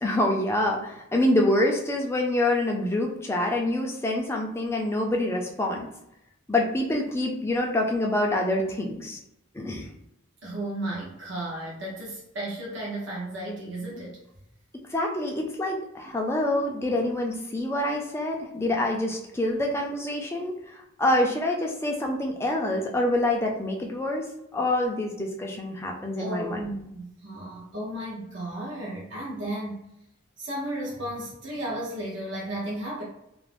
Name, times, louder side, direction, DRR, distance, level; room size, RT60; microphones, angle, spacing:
voice 1, 0.0-5.9 6.5-9.2 9.5-9.9 14.9-24.2 24.5-26.6, left 1 dB, 10° left, 0 dB, 0.3 m, -26 dB
voice 2, 10.4-14.2 16.0-16.1 26.2-29.9 30.4-33.0, right 1 dB, 60° right, -5 dB, 0.7 m, -34 dB
2.4 x 2.0 x 3.2 m, 0.83 s
head